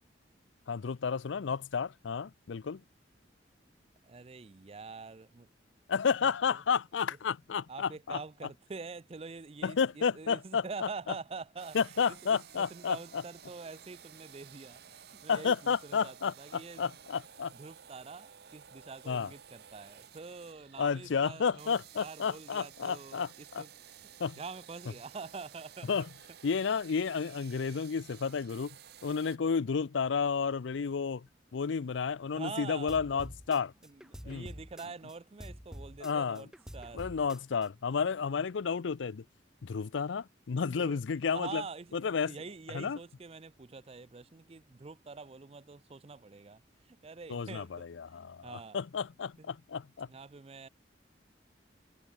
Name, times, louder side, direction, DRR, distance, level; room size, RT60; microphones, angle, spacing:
voice 1, 0.7-2.8 5.9-8.2 9.6-10.9 11.7-13.2 15.3-17.5 19.1-19.3 20.8-23.6 24.2-24.4 25.9-26.1 26.4-28.8 29.0-31.3 31.5-33.7 34.3-34.5 36.0-36.4 36.9-39.2 39.6-41.6 41.9-42.4 42.7-43.0 47.3-50.1, left 6 dB, 85° left, 0.5 m, -31 dB
voice 2, 4.0-5.5 6.5-6.6 7.7-11.8 12.1-16.9 17.5-23.7 24.4-25.9 32.4-33.2 33.8-36.5 36.7-37.1 40.6-41.0 41.3-46.6 46.9-48.8 49.4-49.5 50.1-50.7, right 4 dB, 30° right, 0.5 m, -45 dB
sound 1, 11.6-29.4, right 9 dB, 55° right, 0.8 m, -54 dB
sound 2, 32.9-35.1 35.4-37.7, equal, 5° right, 1.6 m, -47 dB
head